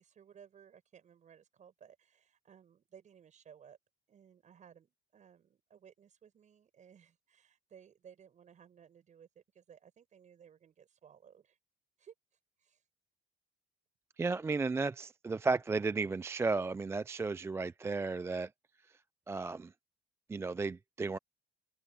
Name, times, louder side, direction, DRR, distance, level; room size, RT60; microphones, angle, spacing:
voice 1, 0.0-3.8 4.1-11.6 12.0-12.1 12.6-12.8, right 8 dB, 45° right, 6.5 m, -59 dB
voice 2, 14.2-18.5 19.3-19.7 20.3-21.2, right 3 dB, 15° right, 0.3 m, -34 dB
open air
cardioid pair, 110°, 17 cm